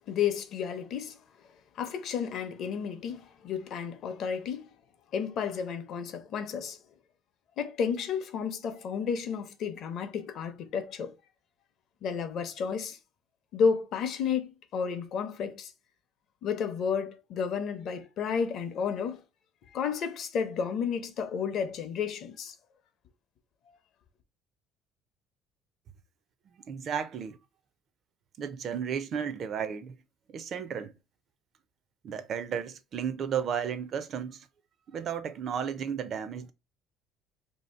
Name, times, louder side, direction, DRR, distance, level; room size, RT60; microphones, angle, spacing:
voice 1, 0.1-1.2 1.8-4.7 5.1-6.8 7.6-11.1 12.0-13.0 13.5-15.7 16.4-19.2 19.7-22.5, left 6 dB, 45° left, 0.6 m, -32 dB
voice 2, 26.7-27.4 28.4-29.9 30.3-30.9 32.0-34.5 34.9-36.5, right 7 dB, 35° right, 0.4 m, -33 dB
3.0 x 2.7 x 4.3 m
cardioid pair, 170°, 0 cm